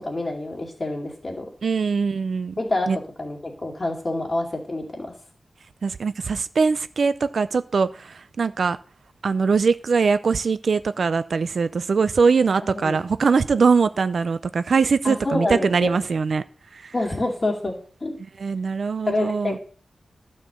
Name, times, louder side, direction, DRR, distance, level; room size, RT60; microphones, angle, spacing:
voice 1, 0.0-1.5 2.6-2.9 3.2-5.1 12.7-13.0 15.0-15.9 16.9-17.7 18.0-18.2 19.1-19.6, left 2 dB, 30° left, 2.5 m, -27 dB
voice 2, 1.6-2.6 2.9-3.0 5.8-8.8 9.2-16.4 16.7-16.9 18.4-19.6, right 5 dB, 60° right, 0.4 m, -22 dB
12.0 x 4.4 x 6.8 m
wide cardioid pair, 140°, 0 cm